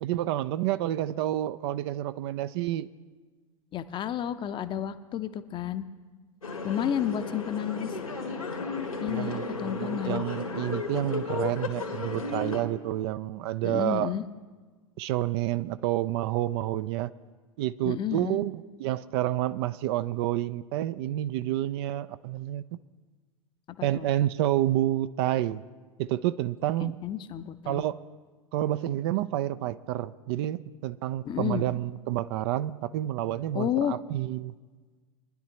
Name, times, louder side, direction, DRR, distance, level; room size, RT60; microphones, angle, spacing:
voice 1, 0.0-2.9 9.1-14.1 15.0-17.1 17.6-22.6 23.8-25.6 26.0-27.0 27.7-28.0 28.5-34.5, right 13 dB, 45° right, 14 dB, 0.4 m, -29 dB
voice 2, 3.7-5.9 6.6-8.0 9.0-10.3 13.6-14.2 17.8-18.4 23.8-24.1 26.8-27.8 31.2-31.7 33.5-34.0, left 9 dB, 25° left, 11 dB, 0.7 m, -31 dB
sound 1, 6.4-12.6, left 4 dB, 85° left, 2.0 m, -34 dB
22.5 x 10.5 x 3.0 m, 1.4 s
figure-of-eight pair, 85°, 18 cm